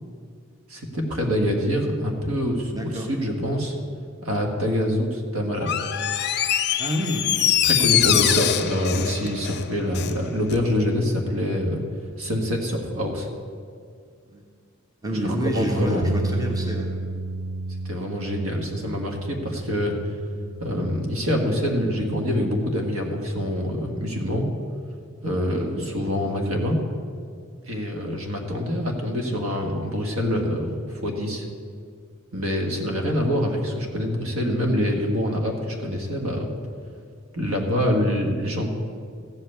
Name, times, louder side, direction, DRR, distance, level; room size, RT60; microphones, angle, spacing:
voice 1, 0.7-3.7 4.2-5.8 7.6-11.8 12.2-13.3 15.2-16.1 17.9-19.9 20.6-24.5 25.2-26.8 27.6-31.5 32.3-36.5 37.3-38.7, equal, 75° right, 2 dB, 1.7 m, -25 dB
voice 2, 2.7-3.1 6.8-7.5 7.8-8.2 14.3-14.4 15.0-16.9 25.6-25.8, equal, 20° right, 1 dB, 1.3 m, -28 dB
Door, 5.6-10.2 10.5-10.6, left 11 dB, 50° left, 0.5 m, -23 dB
sound 1, 16.0-22.3, right 2 dB, 50° right, 0.5 m, -33 dB
14.0 x 5.6 x 8.3 m, 2.2 s
head